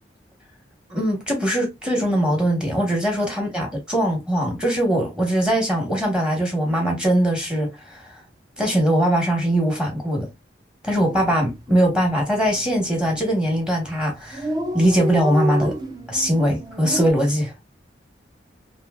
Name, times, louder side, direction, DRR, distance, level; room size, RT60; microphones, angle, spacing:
voice 1, 0.9-8.2 8.6-10.3 10.8-15.7 16.1-17.5, equal, 5° right, 1.1 m, -21 dB
Dog, 10.9-11.1 11.4-11.5 11.8-12.5 13.1-13.3 13.6-13.7 13.9-14.0 14.2-17.1, right 1 dB, 20° right, 0.5 m, -29 dB
3.0 x 3.0 x 2.3 m
head